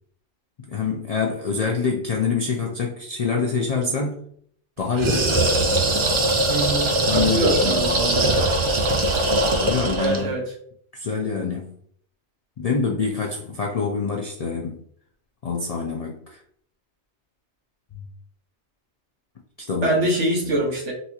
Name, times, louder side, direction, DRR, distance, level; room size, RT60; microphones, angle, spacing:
voice 1, 0.7-4.2 4.8-5.5 7.0-8.1 9.6-10.3 10.9-11.8 12.6-14.8 15.4-16.4 17.9-18.0 19.7-19.9 20.4-20.6, left 5 dB, 60° left, -1 dB, 0.4 m, -26 dB
sound 1, 4.9-10.3, right 1 dB, 50° right, 0.3 m, -21 dB
voice 2, 6.5-8.4 10.0-10.4 19.8-20.9, right 2 dB, 80° right, -2 dB, 1.3 m, -24 dB
4.0 x 2.8 x 2.3 m, 0.65 s
omnidirectional pair, 1.2 m